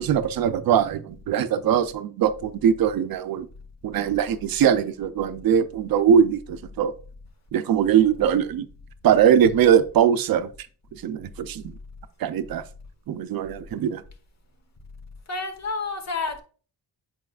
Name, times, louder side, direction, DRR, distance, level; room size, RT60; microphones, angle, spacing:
voice 1, 0.0-3.5 3.8-6.9 7.5-8.7 9.0-10.5 10.9-11.7 12.2-12.6 13.1-14.0, right 8 dB, 65° right, 0.6 m, -21 dB
voice 2, 15.3-16.4, left 3 dB, 45° left, 1.2 m, -30 dB
8.2 x 5.1 x 2.5 m
cardioid pair, 115°, 39 cm